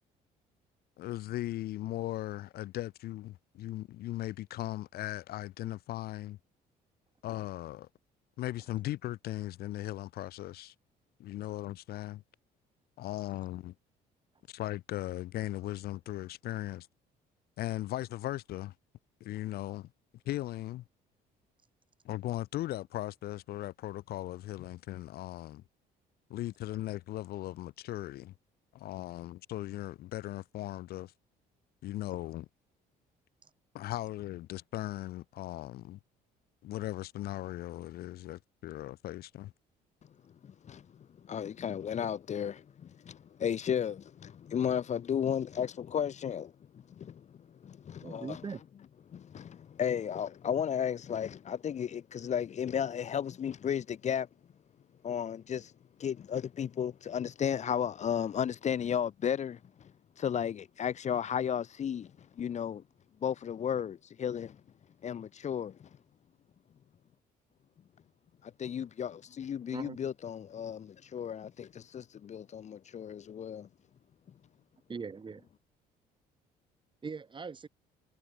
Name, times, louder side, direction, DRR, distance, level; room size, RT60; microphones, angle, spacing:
voice 1, 1.0-6.4 7.2-7.9 8.4-10.7 11.2-12.2 13.0-13.7 14.5-16.9 17.6-18.7 19.2-19.9 20.2-20.8 22.0-25.6 26.3-28.3 28.7-31.1 31.8-32.5 33.7-36.0 36.6-39.5, left 15 dB, 65° left, 0.7 m, -38 dB
voice 2, 40.4-40.8 41.2-47.2 47.6-48.4 49.1-54.3 55.0-55.7 56.0-59.9 60.2-62.1 62.4-62.8 63.2-64.6 65.0-65.9 68.4-73.7, left 8 dB, 45° left, 1.4 m, -34 dB
voice 3, 48.0-48.6 69.7-70.1 74.9-75.5 77.0-77.7, right 5 dB, 30° right, 6.3 m, -41 dB
cardioid pair, 110°, 17 cm